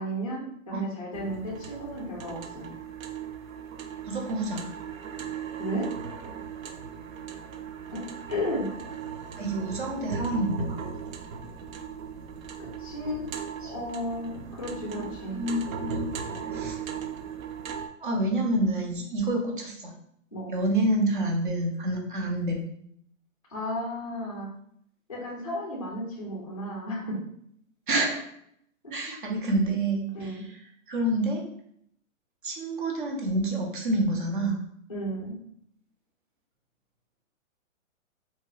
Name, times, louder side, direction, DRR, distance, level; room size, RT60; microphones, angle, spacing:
voice 1, 0.0-2.7 5.6-5.9 7.9-8.7 12.6-13.4 13.6-15.4 20.3-20.5 23.5-24.5 25.1-27.2 28.8-28.9 30.1-30.5 34.9-35.4, equal, 30° left, -3 dB, 0.3 m, -33 dB
sound 1, 1.1-17.9, right 6 dB, 80° right, 0.5 m, -38 dB
voice 2, 4.0-4.6 9.4-10.8 13.6-13.7 15.3-16.1 16.5-16.7 18.0-19.9 20.5-22.6 27.9-28.3 28.9-30.3 30.9-31.4 32.4-34.6, right 1 dB, 40° right, 0 dB, 0.6 m, -28 dB
2.9 x 2.7 x 2.3 m, 0.69 s
hypercardioid pair, 175°, 40 cm